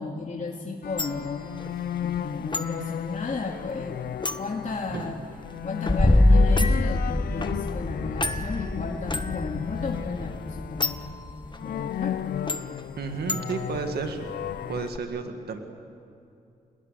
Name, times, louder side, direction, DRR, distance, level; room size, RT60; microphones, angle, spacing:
voice 1, 0.0-1.4 2.0-5.2 5.6-11.0 11.6-12.4, left 4 dB, 50° left, 0 dB, 2.5 m, -34 dB
sound 1, 0.8-14.9, left 10 dB, 75° left, 0.5 m, -34 dB
sound 2, 1.0-15.0, left 3 dB, 30° left, 1.6 m, -37 dB
sound 3, 5.9-11.4, left 1 dB, 10° left, 1.1 m, -24 dB
voice 2, 13.0-14.3 14.7-15.6, right 5 dB, 80° right, 6 dB, 2.0 m, -32 dB
27.0 x 20.0 x 9.9 m, 2.6 s
supercardioid pair, 50°, 16 cm